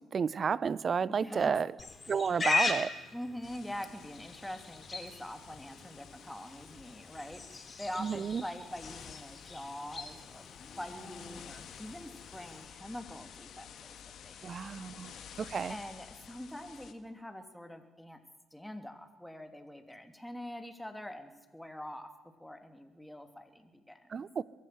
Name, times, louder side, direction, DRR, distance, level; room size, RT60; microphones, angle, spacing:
voice 1, 0.1-1.7 2.1-2.9 8.0-8.4 14.4-15.1 15.4-15.8 24.1-24.4, right 6 dB, 45° right, 19 dB, 0.7 m, -31 dB
voice 2, 1.1-1.5 3.1-10.5 10.8-14.0 14.2-14.8 15.7-18.2 18.5-24.3, left 1 dB, 5° left, 6 dB, 2.9 m, -44 dB
Livestock farm animals working animals, 1.8-12.7, left 4 dB, 35° left, 3.2 m, -39 dB
sound 1, 3.4-16.9, left 8 dB, 60° left, 1.9 m, -52 dB
23.0 x 14.5 x 7.8 m, 1.1 s
hypercardioid pair, 50°, 0 cm